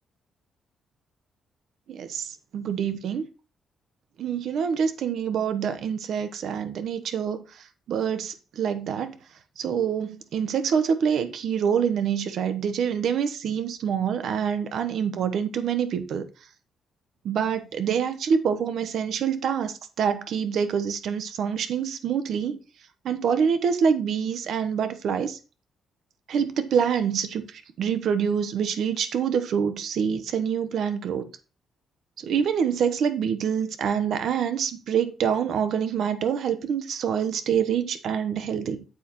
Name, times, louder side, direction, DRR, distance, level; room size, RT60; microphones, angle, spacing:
voice 1, 1.9-3.2 4.2-7.4 7.9-9.2 9.6-16.2 17.2-22.6 23.0-25.4 26.3-27.4 27.8-31.3 32.2-38.8, right 7 dB, 65° right, 1.0 m, -26 dB
8.4 x 7.5 x 3.1 m
cardioid pair, 145°, 0 cm